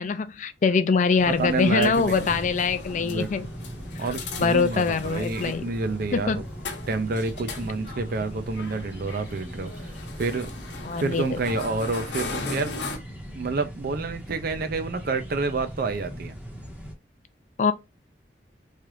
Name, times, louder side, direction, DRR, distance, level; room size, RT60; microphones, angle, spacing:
voice 1, 0.0-3.5 4.0-4.1 4.4-5.7 6.1-6.4 10.8-11.4 17.6-17.7, left 5 dB, 45° left, 0.4 m, -23 dB
sound 1, 1.0-13.0, left 3 dB, 75° left, 0.9 m, -39 dB
sound 2, 1.2-16.9, equal, 10° right, 1.0 m, -39 dB
voice 2, 1.3-2.2 2.9-3.5 4.0-6.4 6.9-9.7 10.2-10.5 11.0-12.8 13.3-16.3, right 3 dB, 55° right, 0.5 m, -28 dB
3.2 x 2.4 x 3.1 m
head